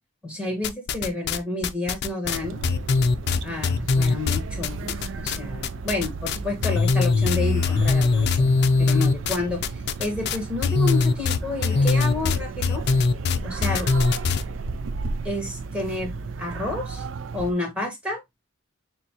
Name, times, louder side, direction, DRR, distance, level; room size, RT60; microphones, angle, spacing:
voice 1, 0.2-2.6 3.3-12.8 13.4-13.9 15.2-16.1 16.4-17.1 17.3-18.2, left 2 dB, 5° right, 1.6 m, -30 dB
sound 1, 0.6-1.4 1.6-5.4 5.6-6.4 6.6-14.4, left 4 dB, 55° left, 0.4 m, -21 dB
sound 2, 2.2-17.5, right 4 dB, 70° right, 0.4 m, -34 dB
6.5 x 2.2 x 2.8 m
head